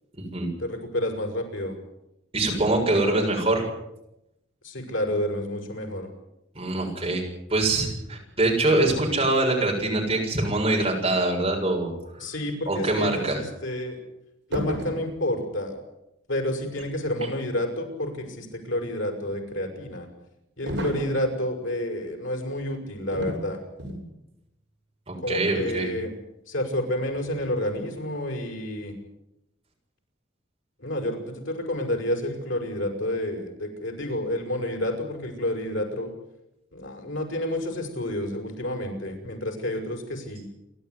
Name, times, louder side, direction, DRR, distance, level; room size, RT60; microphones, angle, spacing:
voice 1, 0.6-1.8 4.6-6.1 12.2-14.0 14.5-15.8 16.3-20.1 20.6-23.6 25.2-26.1 26.5-28.9 30.8-36.1 36.7-40.5, left 1 dB, 85° left, 2 dB, 6.2 m, -29 dB
voice 2, 2.3-3.7 6.6-12.2 12.7-13.4 25.1-25.9, right 2 dB, 30° right, -1 dB, 7.1 m, -24 dB
sound 1, 14.5-15.1 20.7-21.2 23.1-23.4 23.8-24.1, equal, 70° right, 7.2 m, -30 dB
29.0 x 12.5 x 9.8 m, 0.88 s
head